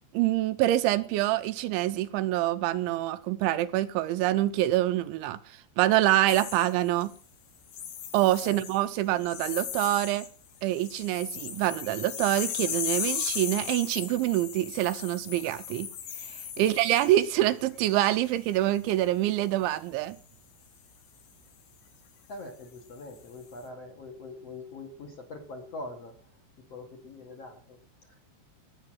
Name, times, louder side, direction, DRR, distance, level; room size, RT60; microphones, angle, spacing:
voice 1, 0.1-5.4 5.8-7.1 8.1-10.2 10.6-15.9 16.6-20.2, right 14 dB, 90° right, 3.3 m, -26 dB
sound 1, 6.3-7.2 7.7-8.9 9.2-10.3 10.6-17.4 17.9-18.2, left 8 dB, 75° left, 4.3 m, -36 dB
voice 2, 22.3-26.2 26.7-27.8 28.1-28.2, left 2 dB, 45° left, 2.6 m, -43 dB
18.5 x 7.6 x 7.5 m
omnidirectional pair, 5.3 m